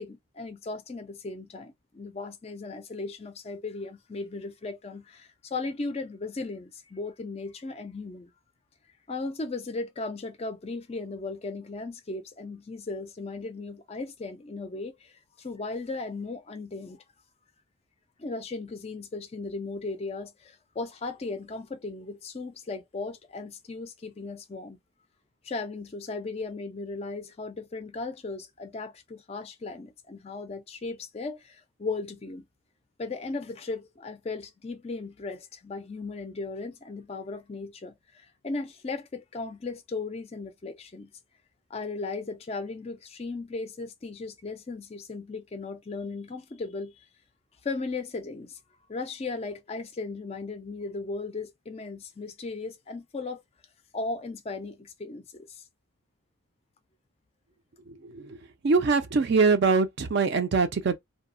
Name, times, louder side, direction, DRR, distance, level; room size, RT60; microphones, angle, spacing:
voice 1, 0.0-8.3 9.1-15.1 15.4-17.0 18.2-24.8 25.4-32.5 33.0-41.1 41.7-47.1 47.6-48.6 48.9-53.4 53.9-55.6, left 3 dB, 30° left, 0.3 m, -36 dB
voice 2, 57.9-58.4 58.6-61.0, right 4 dB, 50° right, 0.4 m, -23 dB
2.7 x 2.0 x 2.4 m
head